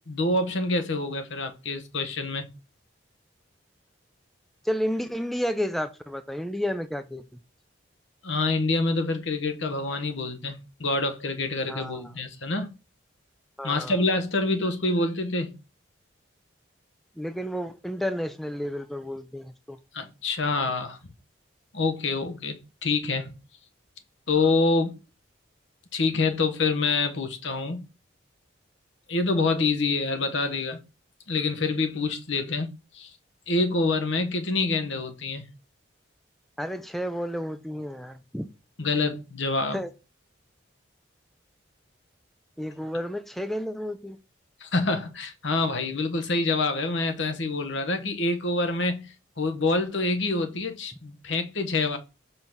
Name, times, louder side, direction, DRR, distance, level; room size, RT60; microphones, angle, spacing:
voice 1, 0.1-2.4 8.2-12.7 13.6-15.5 19.9-21.0 21.7-22.6 22.8-23.3 24.3-24.9 25.9-27.8 29.1-30.8 31.3-33.1 33.5-35.4 38.8-39.8 44.6-52.0, left 3 dB, 70° left, 1.1 m, -26 dB
voice 2, 4.6-7.2 11.7-12.0 13.6-13.9 17.2-19.8 36.6-38.5 39.7-39.9 42.6-44.2, equal, ahead, 0.3 m, -31 dB
5.6 x 3.9 x 6.0 m
head